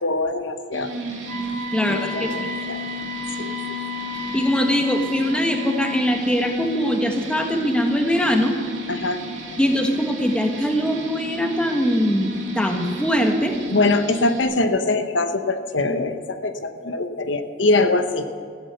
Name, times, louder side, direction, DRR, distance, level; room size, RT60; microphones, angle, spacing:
voice 1, 0.0-0.9 1.8-2.8 3.4-3.5 8.9-9.2 13.7-18.3, left 2 dB, 80° left, 8 dB, 1.0 m, -23 dB
sound 1, 0.7-14.4, left 2 dB, 85° right, 2.4 m, -33 dB
Wind instrument woodwind instrument, 1.2-6.1, right 1 dB, 45° right, 2.9 m, -35 dB
voice 2, 1.7-2.3 4.3-8.5 9.6-13.5, equal, 5° left, 3 dB, 1.4 m, -22 dB
15.5 x 9.8 x 6.9 m, 2.2 s
head